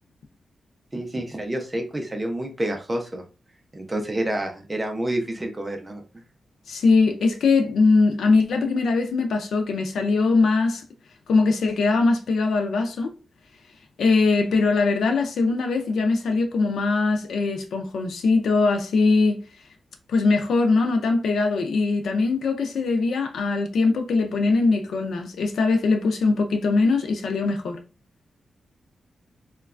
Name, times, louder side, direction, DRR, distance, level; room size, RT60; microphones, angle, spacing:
voice 1, 0.9-3.2 3.7-6.0, right 1 dB, 15° right, 0.5 m, -28 dB
voice 2, 6.7-10.8 11.3-13.1 14.0-19.4 20.1-27.8, left 3 dB, 85° left, 0.4 m, -21 dB
3.1 x 2.2 x 2.4 m
wide cardioid pair, 175°, 0 cm